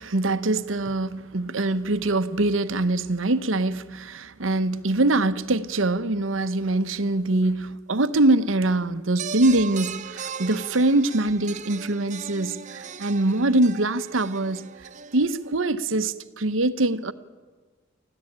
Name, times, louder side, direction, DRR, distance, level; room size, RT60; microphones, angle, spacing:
voice 1, 0.0-14.7 15.1-17.1, right 2 dB, 75° right, 1.0 m, -23 dB
sound 1, 9.2-15.5, right 6 dB, 40° right, 0.8 m, -38 dB
24.5 x 15.5 x 8.8 m
head